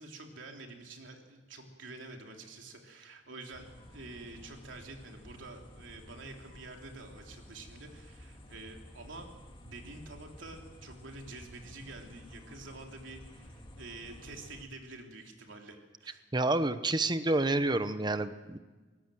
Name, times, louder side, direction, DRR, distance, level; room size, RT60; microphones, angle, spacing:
voice 1, 0.0-9.3 9.6-16.2, right 2 dB, 90° right, 2 dB, 3.3 m, -48 dB
sound 1, 3.5-14.6, left 1 dB, 25° left, 2.0 m, -52 dB
voice 2, 16.3-18.6, right 2 dB, 25° right, 11 dB, 0.9 m, -29 dB
23.0 x 18.5 x 7.7 m, 1.3 s
head